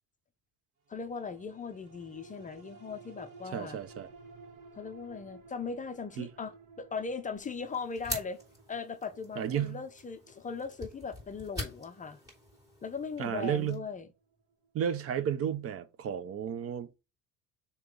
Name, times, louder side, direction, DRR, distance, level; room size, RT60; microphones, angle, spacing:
voice 1, 0.9-3.8 4.7-8.4 8.7-12.2 12.8-14.1, left 5 dB, 25° left, 0.5 m, -39 dB
sound 1, 0.9-15.5 16.0-16.1, right 4 dB, 65° right, 1.8 m, -56 dB
voice 2, 3.5-4.1 6.2-6.3 9.4-9.8 13.2-13.8 14.7-16.9, right 9 dB, 45° right, 0.6 m, -32 dB
sound 2, 7.4-13.8, equal, 10° right, 3.2 m, -45 dB
6.8 x 3.0 x 5.2 m
cardioid pair, 145°, 33 cm